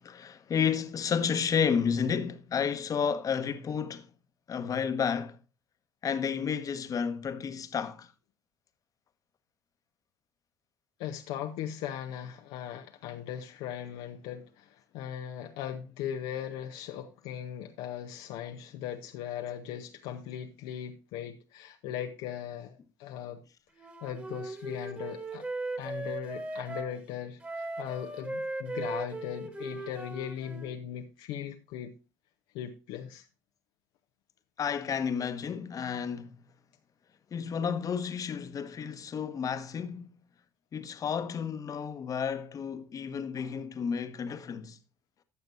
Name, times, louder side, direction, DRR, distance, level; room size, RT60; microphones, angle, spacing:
voice 1, 0.0-4.1 4.5-5.4 6.0-8.1 34.6-36.4 37.3-40.1 40.7-44.8, left 7 dB, 40° left, 1.2 m, -31 dB
voice 2, 11.0-23.4 24.0-25.4 25.8-31.9 32.5-33.2, left 9 dB, 65° left, 0.8 m, -38 dB
Wind instrument woodwind instrument, 23.8-26.9 27.4-30.7, right 2 dB, 20° right, 2.1 m, -38 dB
15.0 x 6.6 x 2.6 m
hypercardioid pair, 60°, 9 cm